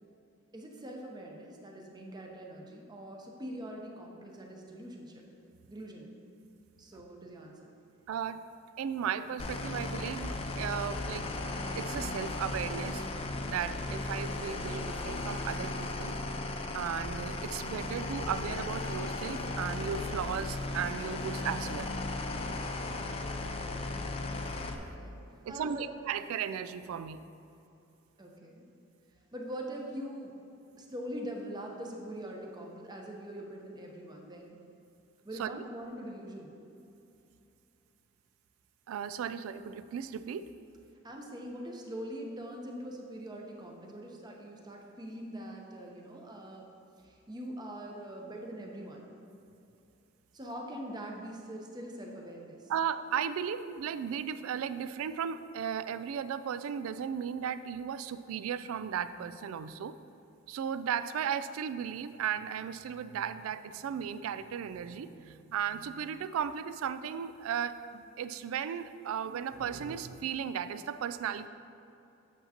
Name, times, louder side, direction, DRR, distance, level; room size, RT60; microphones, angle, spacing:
voice 1, 0.5-5.2 5.7-6.1 6.8-7.7 23.4-23.8 24.8-25.2 25.5-25.8 28.2-28.6 29.3-30.3 30.8-34.6 35.2-36.5 41.0-46.7 47.0-49.0 50.3-52.6, equal, 20° right, 0 dB, 0.7 m, -43 dB
voice 2, 8.1-8.4 8.8-11.3 11.8-13.0 13.4-16.2 16.7-21.9 24.3-24.4 25.4-27.2 35.4-35.7 38.9-40.5 52.7-59.9 60.5-71.5, right 8 dB, 80° right, 14 dB, 0.3 m, -36 dB
sound 1, 9.4-24.8, left 2 dB, 30° left, 0.4 m, -36 dB
8.3 x 7.2 x 2.8 m, 2.8 s
head